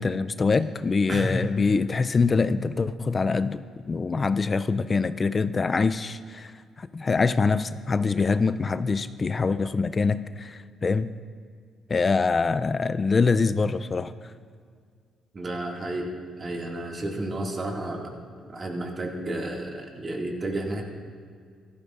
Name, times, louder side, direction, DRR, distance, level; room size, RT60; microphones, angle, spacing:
voice 1, 0.0-6.5 6.8-11.1 11.9-14.1, left 4 dB, 35° left, 13 dB, 0.4 m, -24 dB
voice 2, 1.1-1.4 15.3-16.1 16.4-18.1 18.4-20.8, right 1 dB, 35° right, 0 dB, 2.1 m, -31 dB
15.0 x 13.0 x 2.5 m, 2.1 s
cardioid pair, 90°, 0 cm